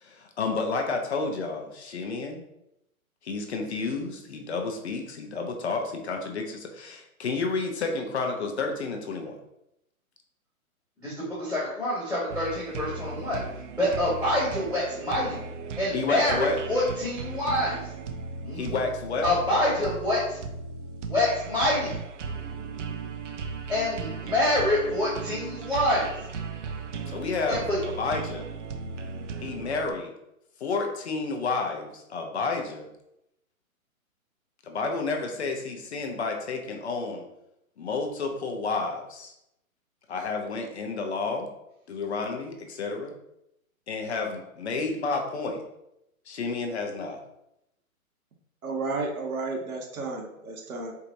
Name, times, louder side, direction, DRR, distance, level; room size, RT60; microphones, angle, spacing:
voice 1, 0.0-2.4 3.2-9.4 15.9-16.6 18.5-19.3 27.1-28.5 29.4-30.1 30.6-32.9 34.6-37.3 37.8-39.3 40.1-41.5 41.9-43.1 43.9-45.6 46.3-47.2, left 4 dB, 50° left, 3 dB, 0.7 m, -30 dB
voice 2, 11.0-13.4 13.8-15.4 15.8-17.8 18.4-18.6 19.2-20.4 21.1-22.0 23.7-26.1 27.5-27.8, left 1 dB, ahead, -37 dB, 0.5 m, -26 dB
sound 1, 12.3-29.9, right 5 dB, 55° right, 0.5 m, -37 dB
voice 3, 48.6-50.9, right 3 dB, 75° right, 2 dB, 1.2 m, -32 dB
4.5 x 2.7 x 2.6 m, 0.83 s
hypercardioid pair, 165°, 43 cm